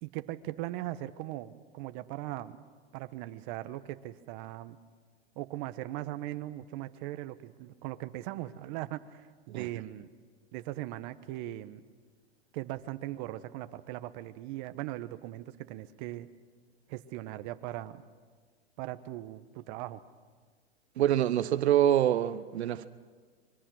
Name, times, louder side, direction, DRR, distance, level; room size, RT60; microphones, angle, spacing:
voice 1, 0.0-2.6 2.9-4.8 5.4-10.1 10.5-11.8 12.5-16.3 16.9-18.0 18.8-20.0, right 15 dB, 50° right, 1.2 m, -39 dB
voice 2, 21.0-22.9, right 11 dB, 85° right, 0.9 m, -25 dB
25.5 x 23.0 x 6.3 m
hypercardioid pair, 130°, 32 cm